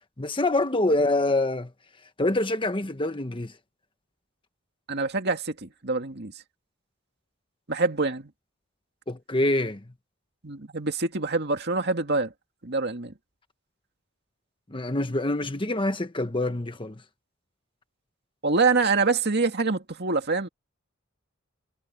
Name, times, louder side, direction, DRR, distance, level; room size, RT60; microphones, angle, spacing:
voice 1, 0.2-1.7 2.2-3.5 9.1-9.8 14.7-17.0, left 2 dB, 25° left, 1.3 m, -25 dB
voice 2, 4.9-6.3 7.7-8.3 10.4-12.3 12.6-13.1 18.4-20.5, right 3 dB, 50° right, 2.3 m, -25 dB
head